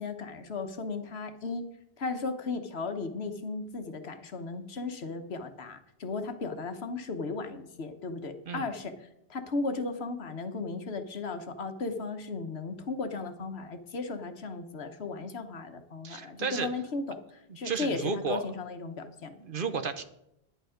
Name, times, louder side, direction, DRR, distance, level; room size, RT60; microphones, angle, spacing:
voice 1, 0.0-1.7 2.0-8.9 9.3-19.3, left 3 dB, 75° left, 7 dB, 1.4 m, -36 dB
voice 2, 16.0-16.7 17.6-18.4 19.4-20.0, right 5 dB, 55° right, 10 dB, 1.0 m, -32 dB
10.5 x 10.5 x 5.1 m, 0.81 s
omnidirectional pair, 1.1 m